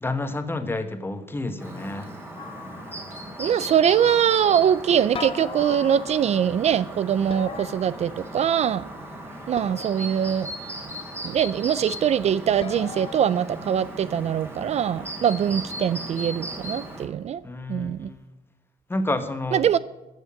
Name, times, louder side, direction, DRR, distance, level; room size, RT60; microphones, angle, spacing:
voice 1, 0.0-2.1 17.4-18.2 18.9-19.7, left 2 dB, 15° left, 1.3 m, -29 dB
Chirp tweet, 1.6-17.1, right 1 dB, 15° right, 2.8 m, -37 dB
sound 1, 2.4-3.3 5.1-6.5 7.3-8.6 9.6-10.4 12.6-13.2, left 7 dB, 40° left, 0.7 m, -39 dB
voice 2, 3.4-8.9 9.5-10.5 11.2-17.4 17.7-18.1 19.5-19.8, right 9 dB, 50° right, 0.4 m, -23 dB
14.5 x 6.4 x 8.6 m
cardioid pair, 125°, 14 cm